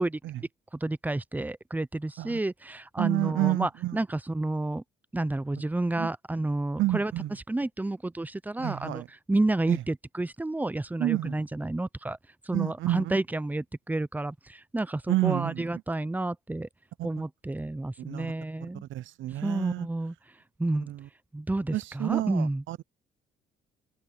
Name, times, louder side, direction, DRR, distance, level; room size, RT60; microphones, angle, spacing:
voice 1, 0.0-4.8 5.1-7.1 7.5-12.2 12.4-16.7 17.0-18.8 19.4-20.1 20.6-20.9 21.3-22.6, right 2 dB, 10° right, 0.6 m, -30 dB
voice 2, 3.0-4.0 6.0-6.1 6.8-7.3 8.6-9.1 9.7-9.8 11.0-11.4 12.5-13.1 15.1-15.6 18.1-18.3 18.9-19.9 20.9-21.0 21.7-22.8, right 16 dB, 75° right, 0.6 m, -29 dB
open air
cardioid pair, 90°, 20 cm